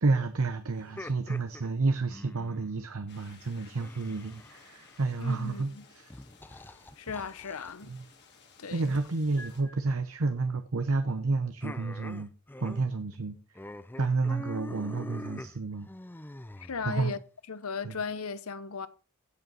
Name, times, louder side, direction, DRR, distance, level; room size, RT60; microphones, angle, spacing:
voice 1, 0.0-6.1 7.9-8.0 8.7-12.3 12.6-13.4 14.0-15.9 16.8-17.1 17.8-18.0, right 3 dB, 65° right, 0.8 m, -30 dB
sound 1, 0.7-2.8 3.8-5.2 6.1-7.7 9.4-9.8 11.6-12.9 13.1-13.3 13.6-17.1, left 1 dB, 10° left, 0.4 m, -44 dB
sound 2, 3.1-9.6, left 5 dB, 50° left, 2.4 m, -58 dB
voice 2, 5.2-5.8 7.0-7.9 8.6-8.9 16.6-17.2 17.5-18.9, left 5 dB, 70° left, 0.8 m, -36 dB
16.5 x 5.5 x 4.1 m
head